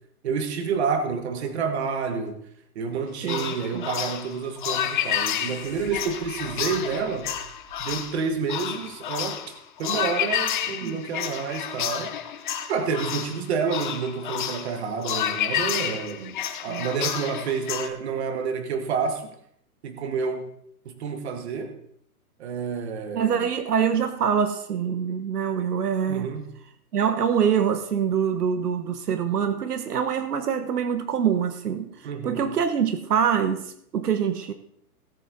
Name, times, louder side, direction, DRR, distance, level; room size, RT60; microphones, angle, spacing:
voice 1, 0.2-2.4 2.8-7.3 7.8-9.4 9.8-12.1 12.7-16.4 16.6-19.3 19.8-20.4 20.9-21.7 22.4-23.5 26.1-26.5 32.0-32.4, right 5 dB, 45° right, 7 dB, 1.7 m, -29 dB
sound 1, 3.2-17.9, left 10 dB, 30° left, 0.8 m, -30 dB
sound 2, 4.4-9.2, right 4 dB, 15° right, 1.8 m, -50 dB
voice 2, 23.1-26.3 26.9-31.9 32.2-34.5, right 7 dB, 80° right, 9 dB, 1.3 m, -25 dB
18.0 x 7.5 x 4.0 m, 0.69 s
hypercardioid pair, 165°, 46 cm